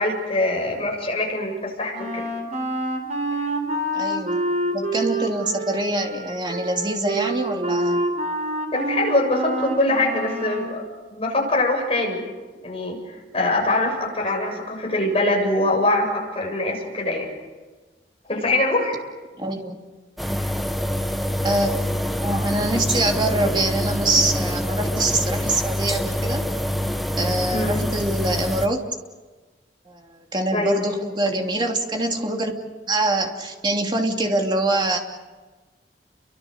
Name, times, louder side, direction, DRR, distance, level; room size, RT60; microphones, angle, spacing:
voice 1, 0.0-2.2 8.7-10.8 11.1-12.3 12.6-17.3 18.3-19.0 20.4-20.5 27.5-27.9 30.5-30.9, left 2 dB, 35° left, 0 dB, 7.3 m, -23 dB
Wind instrument woodwind instrument, 1.9-10.8, right 1 dB, 45° right, 4.2 m, -27 dB
voice 2, 3.9-4.4 4.7-8.1 14.3-14.6 19.4-19.8 21.4-21.7 22.2-26.5 27.2-28.8 29.8-32.5 32.9-35.0, right 2 dB, 25° right, 2 dB, 3.0 m, -24 dB
sound 1, 20.2-28.7, equal, ahead, 1.3 m, -25 dB
30.0 x 24.5 x 6.8 m, 1.3 s
head